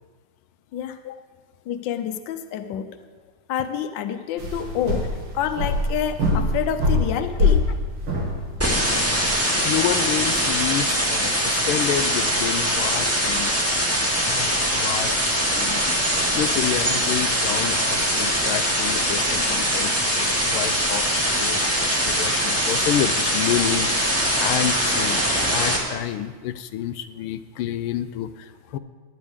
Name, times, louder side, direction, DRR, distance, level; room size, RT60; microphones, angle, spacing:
voice 1, 1.7-3.0 3.5-5.1 5.3-7.6, left 9 dB, 65° left, 8 dB, 1.4 m, -28 dB
sound 1, 4.4-9.3, left 2 dB, 90° right, 3.2 m, -24 dB
sound 2, 8.6-25.8, equal, 5° right, 1.8 m, -22 dB
voice 2, 9.6-13.7 14.3-15.1 15.5-16.0 16.4-25.2 25.5-28.8, left 10 dB, 85° left, 10 dB, 1.5 m, -29 dB
18.5 x 10.5 x 3.6 m, 1.4 s
omnidirectional pair, 2.3 m